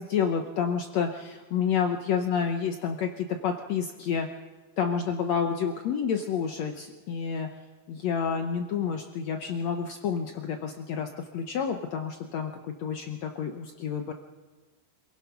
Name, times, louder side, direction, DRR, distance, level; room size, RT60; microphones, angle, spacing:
voice 1, 0.0-4.3 4.8-7.5 7.9-14.1, left 7 dB, 80° left, 5 dB, 1.5 m, -29 dB
27.0 x 17.0 x 5.8 m, 1.3 s
omnidirectional pair, 4.4 m